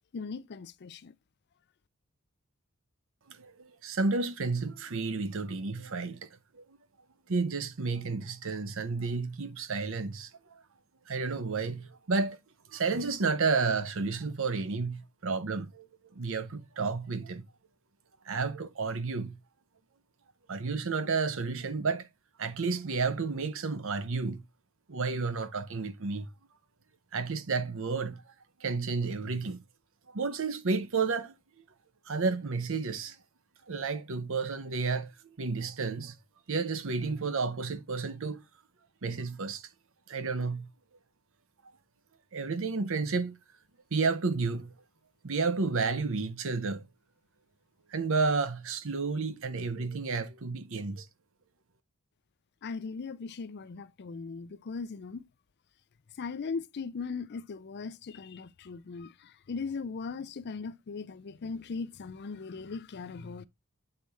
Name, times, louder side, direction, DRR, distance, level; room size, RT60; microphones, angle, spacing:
voice 1, 0.1-1.1 52.6-55.2 56.2-63.5, left 4 dB, 50° left, 0.4 m, -39 dB
voice 2, 3.3-6.3 6.5-6.8 7.3-10.6 11.1-12.4 12.7-15.9 16.1-17.4 18.2-19.4 20.5-22.1 22.4-24.4 24.9-26.3 27.1-28.2 28.6-29.6 30.1-31.3 32.1-33.2 33.7-36.1 36.5-38.4 39.0-39.7 40.1-40.7 42.3-43.4 43.9-44.7 45.2-46.9 47.9-51.1, right 4 dB, 65° right, 0.8 m, -31 dB
7.8 x 4.1 x 3.4 m
head